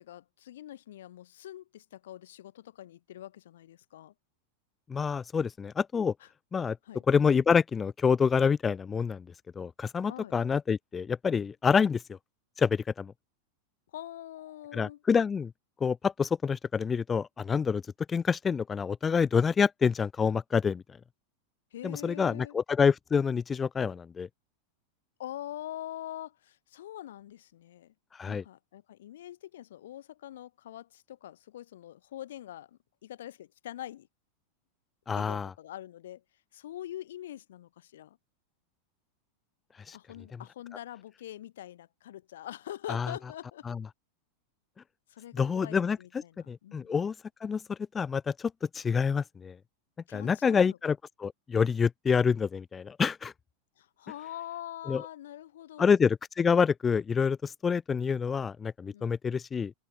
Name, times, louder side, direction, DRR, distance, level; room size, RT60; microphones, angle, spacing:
voice 1, 0.0-4.1 6.2-6.3 6.8-7.0 10.1-10.4 13.9-15.0 21.7-22.5 25.2-27.9 28.3-34.1 35.2-36.2 36.5-38.2 39.9-43.7 45.1-46.9 50.1-50.8 53.8-56.0 58.9-59.1, left 12 dB, 85° left, 4.0 m, -44 dB
voice 2, 4.9-6.1 6.5-6.8 7.1-9.2 9.6-12.2 12.6-13.1 14.7-15.5 15.8-17.8 18.1-20.8 21.8-24.3 28.2-28.4 35.1-35.5 39.9-40.0 42.9-43.1 43.7-43.8 45.3-46.0 46.5-47.1 47.4-49.6 50.1-53.3 54.9-55.0 55.8-59.7, left 6 dB, 15° left, 0.4 m, -27 dB
supercardioid pair, 140°, 0 cm